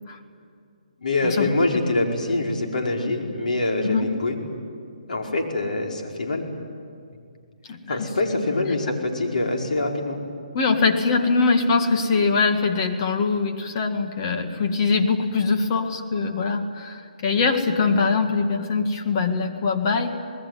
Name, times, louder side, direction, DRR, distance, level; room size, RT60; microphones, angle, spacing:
voice 1, 1.0-4.4 5.1-6.5 7.9-10.2, left 2 dB, 80° left, 1 dB, 5.0 m, -24 dB
voice 2, 10.5-20.1, left 4 dB, 35° left, 4 dB, 1.9 m, -22 dB
26.5 x 20.0 x 9.5 m, 2.3 s
hypercardioid pair, 165°, 4 cm